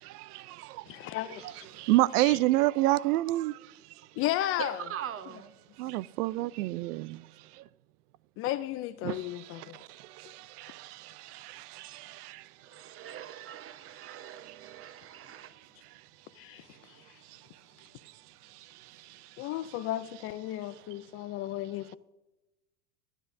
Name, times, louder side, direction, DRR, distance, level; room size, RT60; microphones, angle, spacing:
voice 1, 0.0-0.9 1.7-3.6 5.8-7.3 7.6-7.7 9.0-12.5 13.1-13.4 13.9-14.2 14.4-14.5 18.5-19.2, right 17 dB, 80° right, 0.6 m, -30 dB
voice 2, 0.9-1.6 2.2-2.4 4.2-4.8 8.4-9.8 16.4-17.0 19.4-22.0, left 14 dB, 30° left, 0.4 m, -34 dB
voice 3, 4.6-5.5 12.6-15.5, right 8 dB, 30° right, 1.0 m, -42 dB
22.5 x 9.8 x 2.6 m
supercardioid pair, 125°, 45 cm